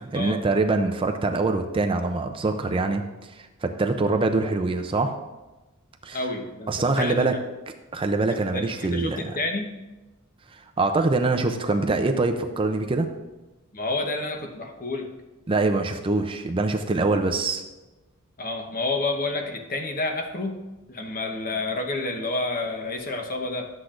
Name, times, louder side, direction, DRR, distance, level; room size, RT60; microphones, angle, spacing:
voice 1, 0.1-3.0 3.3-5.2 6.0-6.2 6.7-7.3 7.9-9.3 10.5-13.1 15.5-17.7, right 3 dB, 25° right, 5 dB, 0.4 m, -24 dB
voice 2, 6.1-7.4 8.3-9.7 13.7-15.1 18.4-20.6 20.9-23.7, left 2 dB, 40° left, 3 dB, 1.0 m, -29 dB
11.5 x 7.9 x 2.5 m, 1.1 s
head